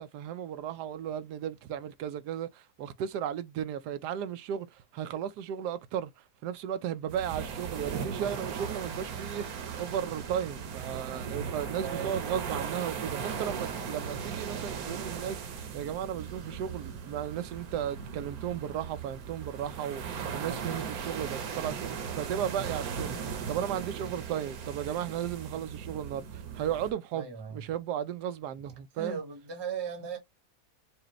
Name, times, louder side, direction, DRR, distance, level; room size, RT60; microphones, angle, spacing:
voice 1, 0.0-6.1 6.4-20.0 20.3-29.2, right 9 dB, 90° right, 1.2 m, -35 dB
sound 1, 7.1-26.9, right 6 dB, 70° right, 1.3 m, -38 dB
voice 2, 11.8-12.2 27.1-27.7 29.0-30.2, right 6 dB, 20° right, 0.8 m, -37 dB
4.9 x 2.3 x 3.0 m
omnidirectional pair, 1.7 m